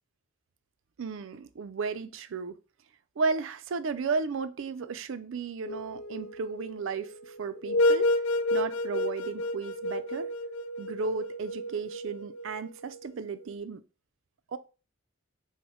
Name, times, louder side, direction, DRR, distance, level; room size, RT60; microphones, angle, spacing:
voice 1, 1.0-2.6 3.2-8.1 8.5-10.3 10.8-13.8 14.5-14.6, right 4 dB, 65° right, 0.4 m, -34 dB
sound 1, 5.7-13.0, left 1 dB, 80° left, 0.4 m, -30 dB
5.3 x 2.1 x 4.2 m
head